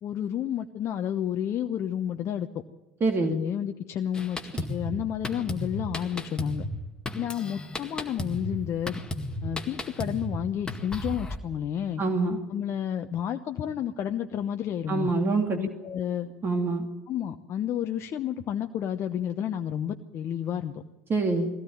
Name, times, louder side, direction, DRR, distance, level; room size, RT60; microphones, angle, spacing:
voice 1, 0.0-2.6 3.2-6.6 7.1-9.0 9.4-12.0 12.5-15.1 15.5-16.3 17.1-20.8, left 9 dB, 40° left, 6 dB, 0.9 m, -31 dB
voice 2, 3.0-3.4 12.0-12.4 14.9-15.6 16.4-16.8 21.1-21.5, right 3 dB, 30° right, 4 dB, 2.6 m, -25 dB
Drum kit, 4.1-11.4, left 1 dB, 10° left, 2.0 m, -35 dB
21.5 x 17.0 x 9.1 m, 1.1 s
figure-of-eight pair, 75°, 8 cm